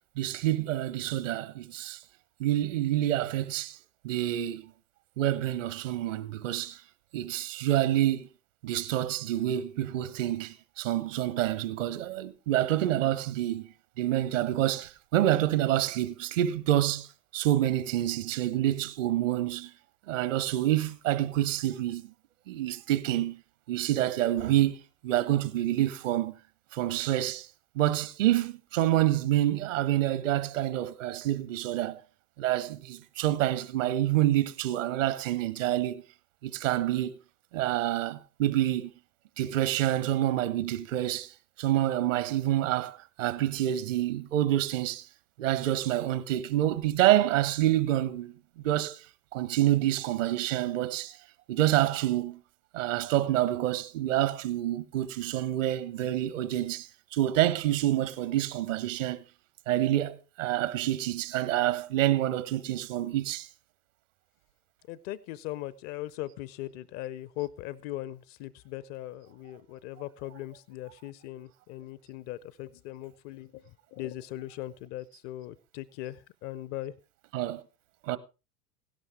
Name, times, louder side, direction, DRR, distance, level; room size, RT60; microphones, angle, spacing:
voice 1, 0.2-2.0 2.4-3.8 4.0-4.7 5.2-6.8 7.1-8.3 8.6-13.7 14.0-17.1 17.3-19.7 20.1-22.1 22.5-23.4 23.7-26.3 26.7-27.5 27.7-32.0 32.4-36.0 36.4-37.1 37.5-38.9 39.4-45.1 45.4-48.3 48.6-49.0 49.3-51.2 51.5-52.4 52.7-59.2 59.7-63.5 77.3-77.6 78.0-78.2, right 13 dB, 55° right, 1.2 m, -27 dB
voice 2, 64.9-73.6 73.9-76.9, left 15 dB, 30° left, 0.5 m, -39 dB
16.5 x 11.5 x 3.5 m
figure-of-eight pair, 85°, 46 cm